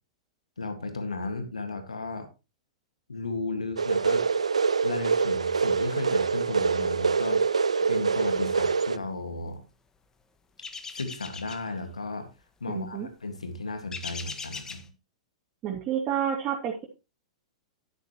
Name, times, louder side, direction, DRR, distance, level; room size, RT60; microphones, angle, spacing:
voice 1, 0.6-2.3 3.1-4.3 4.8-9.6 10.9-12.3 12.6-14.9, left 3 dB, 85° left, 8 dB, 2.0 m, -35 dB
sound 1, 3.8-9.0, right 5 dB, 80° right, 0.5 m, -25 dB
sound 2, 10.6-11.7 13.9-14.8, left 5 dB, 15° left, 1.6 m, -39 dB
voice 2, 12.7-13.1 15.6-16.8, right 9 dB, 35° right, -2 dB, 2.9 m, -29 dB
12.0 x 9.7 x 3.1 m, 0.27 s
figure-of-eight pair, 100°, 3 cm